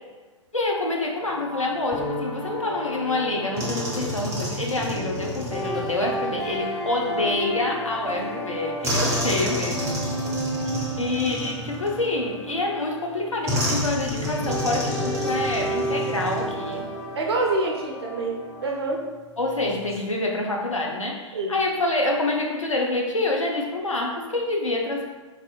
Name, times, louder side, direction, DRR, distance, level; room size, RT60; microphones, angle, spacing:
voice 1, 0.5-9.9 11.0-16.9 19.4-25.0, left 2 dB, 80° left, 0 dB, 0.6 m, -27 dB
sound 1, 1.2-18.6, equal, 5° left, 0.4 m, -32 dB
sound 2, 3.6-6.3 8.8-12.3 13.5-16.8 17.1-17.3 19.7-20.0, equal, 20° right, 0.8 m, -30 dB
voice 2, 17.1-19.0 21.3-21.6, right 2 dB, 55° right, -1 dB, 0.7 m, -26 dB
4.0 x 2.7 x 2.2 m, 1.3 s
figure-of-eight pair, 110°, 16 cm